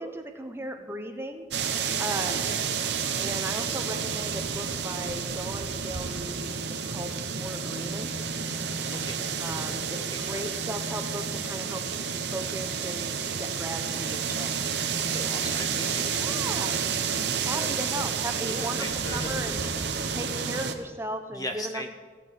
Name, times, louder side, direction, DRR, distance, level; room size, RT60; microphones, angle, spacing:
voice 1, 0.0-1.5 2.0-2.5 3.2-8.3 9.4-14.5 16.2-16.9 17.4-18.9 19.1-19.6 20.1-21.9, right 1 dB, 15° right, 5 dB, 1.2 m, -37 dB
sound 1, 1.5-20.7, right 6 dB, 75° right, 1.1 m, -30 dB
voice 2, 8.9-10.4 15.0-16.1 17.5-17.8 18.5-19.7 21.3-21.9, left 1 dB, 20° left, 4 dB, 0.8 m, -39 dB
15.5 x 6.2 x 9.5 m, 1.4 s
head